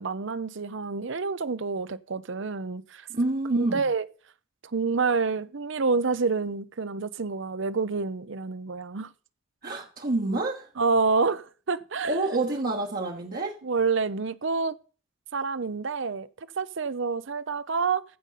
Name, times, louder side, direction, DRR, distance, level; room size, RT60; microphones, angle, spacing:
voice 1, 0.0-3.1 3.5-4.1 4.7-9.1 10.8-12.2 13.6-14.8 15.3-16.3 16.6-18.0, right 4 dB, 65° right, 0.7 m, -28 dB
voice 2, 3.1-3.9 9.6-10.7 12.0-13.6, right 2 dB, 45° right, 1.2 m, -28 dB
15.0 x 5.3 x 5.7 m
head